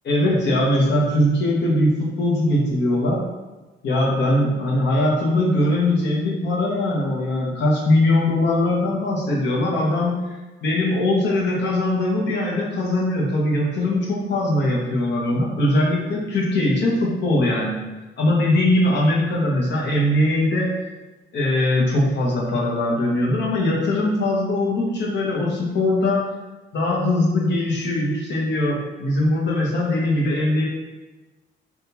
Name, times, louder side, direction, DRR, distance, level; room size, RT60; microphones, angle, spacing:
voice 1, 0.0-3.3 3.8-10.2 10.6-17.8 18.2-20.8 21.3-26.2 26.7-30.7, left 1 dB, 60° left, -3 dB, 0.9 m, -21 dB
3.5 x 2.3 x 2.8 m, 1.2 s
cardioid pair, 90°, 20 cm